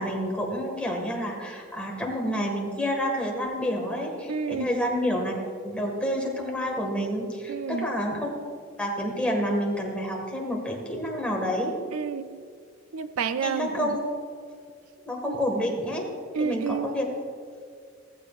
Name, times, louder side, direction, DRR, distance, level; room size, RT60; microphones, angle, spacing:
voice 1, 0.0-5.3 5.6-8.3 8.8-11.7 13.4-14.0 15.0-16.1 16.4-17.1, equal, 5° left, -1 dB, 1.8 m, -29 dB
voice 2, 4.3-4.7 7.5-7.9 11.9-12.4 12.9-14.0 15.3-15.4 16.3-16.9, right 6 dB, 75° right, 11 dB, 0.4 m, -30 dB
15.0 x 15.0 x 2.5 m, 2.2 s
head